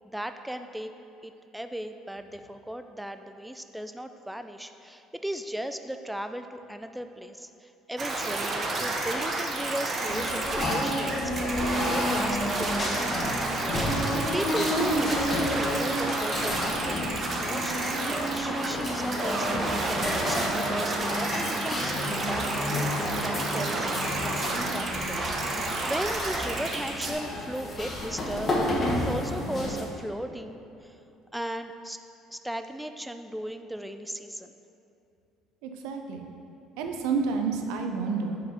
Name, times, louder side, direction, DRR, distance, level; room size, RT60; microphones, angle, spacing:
voice 1, 0.0-0.9 1.2-17.0 17.3-23.0 23.2-28.5 29.0-31.0 31.3-32.0 32.3-34.5, right 1 dB, 5° right, 8 dB, 0.3 m, -37 dB
sound 1, 8.0-27.1, right 2 dB, 40° right, 0.9 m, -30 dB
sound 2, 10.1-29.8, left 1 dB, 30° left, 1.4 m, -31 dB
voice 2, 35.6-36.3 36.8-38.4, right 5 dB, 85° right, 4 dB, 0.6 m, -29 dB
6.1 x 4.5 x 5.8 m, 2.8 s
cardioid pair, 105°, 0 cm